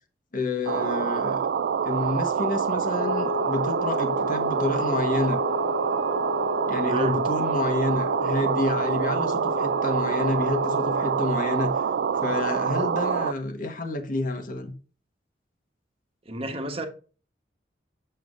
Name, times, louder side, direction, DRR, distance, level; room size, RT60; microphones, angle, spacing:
voice 1, 0.3-1.4 1.8-5.4 6.7-11.9 12.2-14.7, left 2 dB, 50° left, 1.3 m, -29 dB
sound 1, 0.7-13.3, right 7 dB, 65° right, 0.3 m, -26 dB
sound 2, 2.9-11.3, left 11 dB, 70° left, 0.3 m, -34 dB
voice 2, 6.9-7.2 16.3-16.9, right 2 dB, 35° right, 1.2 m, -30 dB
7.9 x 6.8 x 2.6 m
head